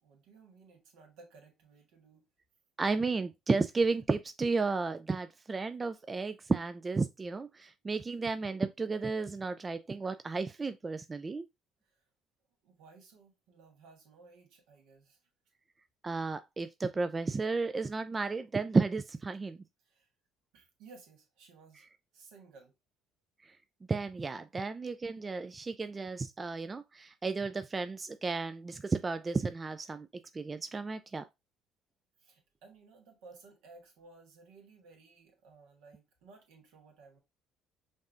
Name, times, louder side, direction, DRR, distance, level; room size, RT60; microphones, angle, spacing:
voice 1, 0.0-2.2 11.8-12.0 12.6-15.2 19.8-20.1 20.5-21.8 22.1-22.7 32.2-37.2, right 4 dB, 80° right, 1.4 m, -57 dB
voice 2, 2.8-11.4 16.0-19.6 23.4-23.6 23.9-30.1 30.3-31.2, right 4 dB, 30° right, 0.3 m, -33 dB
5.2 x 2.7 x 2.5 m
supercardioid pair, 70°, 0 cm